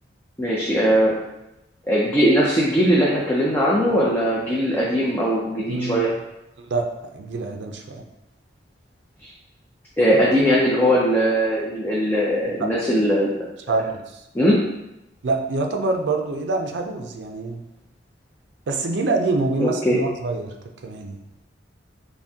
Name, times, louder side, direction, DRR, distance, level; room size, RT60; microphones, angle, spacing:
voice 1, 0.4-1.2 1.8-6.1 10.0-13.4 14.3-14.6 19.6-20.0, equal, 10° left, -6 dB, 0.5 m, -20 dB
voice 2, 5.7-6.0 6.6-8.0 12.6-12.7 13.7-14.2 15.2-17.6 18.7-20.5 20.8-21.2, right 3 dB, 70° right, 3 dB, 0.5 m, -25 dB
5.7 x 2.2 x 2.7 m, 0.90 s
head